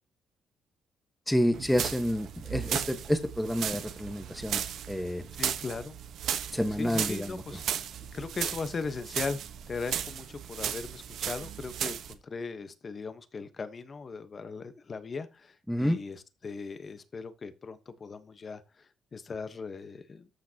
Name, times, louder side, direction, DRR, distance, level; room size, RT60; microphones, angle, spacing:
voice 1, 1.3-4.6 4.9-5.2 6.5-7.4 15.7-16.0, equal, 5° left, 1.4 m, -29 dB
sound 1, 1.5-12.1, right 9 dB, 75° right, 1.2 m, -35 dB
voice 2, 5.4-6.0 6.8-7.6 8.1-9.4 9.7-20.3, left 4 dB, 40° left, 1.2 m, -38 dB
13.5 x 5.9 x 2.9 m
cardioid pair, 90°, 0 cm